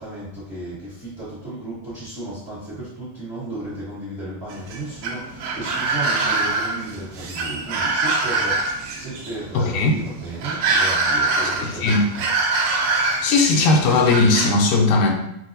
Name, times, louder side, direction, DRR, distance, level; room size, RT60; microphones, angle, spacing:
voice 1, 0.0-12.3, right 2 dB, 35° right, -10 dB, 1.0 m, -34 dB
sound 1, 4.5-14.5, right 3 dB, 80° right, 1.8 m, -24 dB
voice 2, 9.5-9.9 11.6-12.0 13.2-15.1, left 3 dB, 85° left, 2 dB, 2.0 m, -18 dB
5.9 x 2.2 x 2.6 m, 0.81 s
omnidirectional pair, 3.4 m